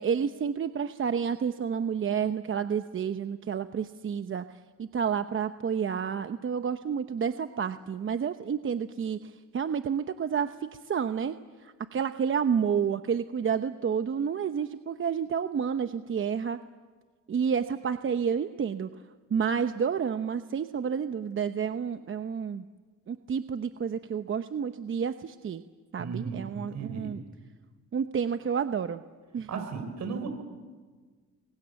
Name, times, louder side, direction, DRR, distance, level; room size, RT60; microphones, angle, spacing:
voice 1, 0.0-4.4 4.8-11.3 11.6-16.6 17.3-18.9 19.3-22.6 23.1-25.6 25.9-27.2 27.9-29.0 29.3-29.6, right 7 dB, 40° right, 9 dB, 0.9 m, -30 dB
voice 2, 26.0-27.1 29.5-30.3, right 5 dB, 65° right, 7 dB, 5.6 m, -35 dB
29.5 x 23.5 x 7.1 m, 1.4 s
cardioid pair, 90°, 30 cm